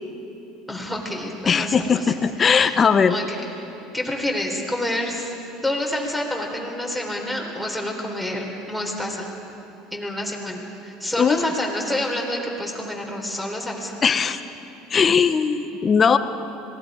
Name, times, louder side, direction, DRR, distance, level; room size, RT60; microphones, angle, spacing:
voice 1, 0.7-2.1 2.4-2.8 3.1-3.4 3.9-5.3 5.6-9.3 9.9-13.9, left 1 dB, ahead, -1 dB, 3.9 m, -28 dB
voice 2, 1.5-3.2 11.2-11.4 14.0-14.4 14.9-16.2, left 6 dB, 30° left, 11 dB, 1.0 m, -19 dB
26.0 x 19.5 x 5.1 m, 3.0 s
supercardioid pair, 105°, 0 cm